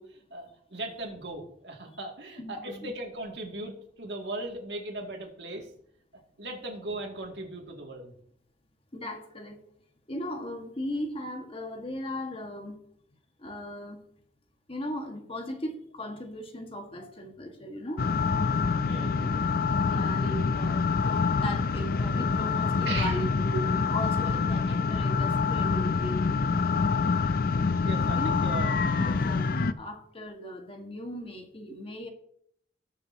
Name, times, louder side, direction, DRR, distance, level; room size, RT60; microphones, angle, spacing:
voice 1, 0.0-5.7 6.4-8.1 18.9-19.4 19.9-20.0 22.9-23.2 27.8-28.8, right 2 dB, 75° right, 1 dB, 2.5 m, -38 dB
voice 2, 2.4-2.9 8.9-9.6 10.1-12.8 13.4-14.0 14.7-18.0 19.7-26.3 28.2-32.1, equal, 35° left, 4 dB, 1.8 m, -37 dB
sound 1, 18.0-29.7, left 4 dB, 55° left, 0.5 m, -26 dB
20.5 x 6.8 x 2.9 m, 0.68 s
head